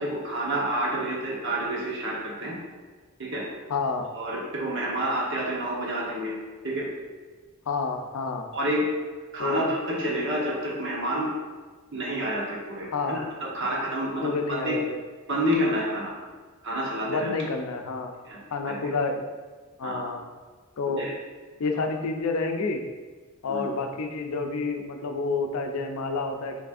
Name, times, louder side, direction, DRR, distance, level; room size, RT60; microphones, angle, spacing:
voice 1, 0.0-2.6 3.2-3.4 4.1-6.3 6.6-6.8 8.5-8.9 9.3-11.3 11.9-14.8 15.3-16.1 16.6-17.3 18.2-18.4 18.7-18.8 19.8-20.0 20.9-21.1 23.5-23.7, right 1 dB, 55° right, -4 dB, 1.1 m, -29 dB
voice 2, 3.7-4.1 7.7-8.5 9.4-9.7 12.9-13.2 14.2-15.0 17.1-18.1 18.5-19.2 19.8-20.2 20.8-21.0 21.6-22.8 23.4-26.6, left 4 dB, 85° left, 4 dB, 0.5 m, -29 dB
5.9 x 3.3 x 2.5 m, 1.4 s
head